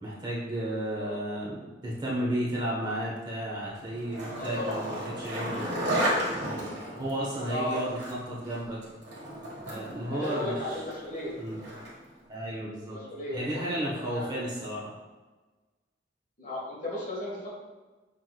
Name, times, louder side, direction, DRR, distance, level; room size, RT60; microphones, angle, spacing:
voice 1, 0.0-5.6 6.3-8.8 9.7-10.8 11.4-11.6 12.3-13.0 13.3-14.9, right 1 dB, 25° right, -6 dB, 1.1 m, -33 dB
Skateboard, 3.7-12.1, equal, 75° right, 1.4 m, -34 dB
voice 2, 4.4-5.0 7.5-7.8 10.1-11.3 12.9-13.6 14.1-14.3 16.4-17.5, left 1 dB, 45° left, -5 dB, 1.4 m, -35 dB
5.9 x 3.5 x 2.3 m, 1.2 s
head